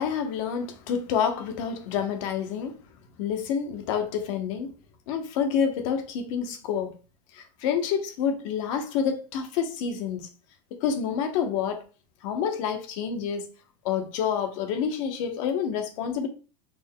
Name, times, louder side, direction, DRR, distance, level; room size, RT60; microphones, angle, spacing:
voice 1, 0.0-2.7 3.2-4.7 5.1-6.9 7.3-10.3 10.8-11.8 12.2-13.5 13.8-16.3, left 7 dB, 50° left, 0.7 m, -28 dB
4.3 x 2.1 x 3.5 m
supercardioid pair, 165°, 21 cm